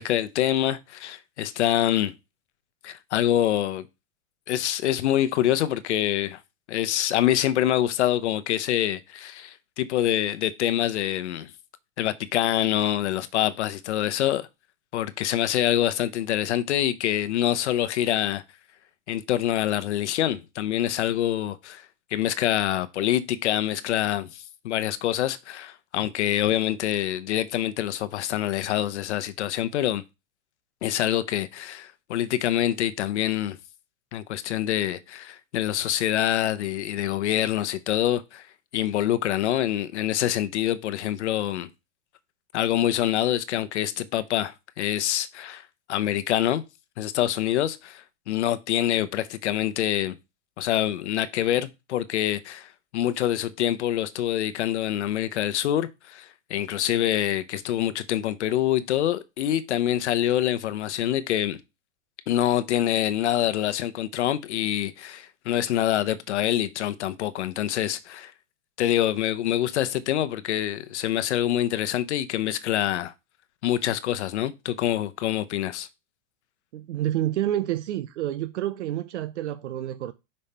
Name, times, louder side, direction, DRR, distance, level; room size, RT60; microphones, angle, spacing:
voice 1, 0.0-2.1 2.8-3.9 4.5-6.4 6.7-11.5 12.0-14.5 14.9-18.4 19.1-21.8 22.1-30.0 30.8-33.6 34.1-38.4 38.7-41.7 42.5-45.6 45.9-46.6 47.0-50.2 50.6-61.6 62.3-68.3 68.8-73.1 73.6-75.9, left 12 dB, 70° left, 0.8 m, -25 dB
voice 2, 76.7-80.1, right 13 dB, 70° right, 0.7 m, -28 dB
5.5 x 5.3 x 4.2 m
supercardioid pair, 180°, 36 cm